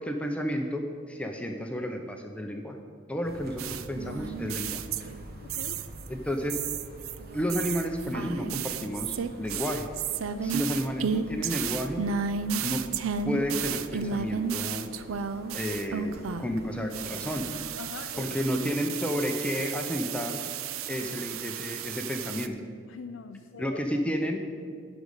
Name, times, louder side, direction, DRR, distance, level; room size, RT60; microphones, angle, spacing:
voice 1, 0.0-2.8 3.1-4.8 6.1-6.6 7.3-9.9 10.4-12.0 12.6-12.8 13.2-14.9 15.5-17.5 18.2-20.4 20.9-22.6 23.6-24.4, equal, 5° left, 3 dB, 0.6 m, -31 dB
sound 1, 3.2-17.7, right 1 dB, 50° right, 1.2 m, -47 dB
sound 2, 3.6-6.1 6.5-16.6 16.9-22.5, right 7 dB, 85° right, 0.5 m, -33 dB
voice 2, 5.4-5.9 10.3-10.6 17.8-18.4 21.0-21.1 22.9-23.8, left 5 dB, 65° left, 6 dB, 0.4 m, -43 dB
11.5 x 5.2 x 8.2 m, 2.2 s
head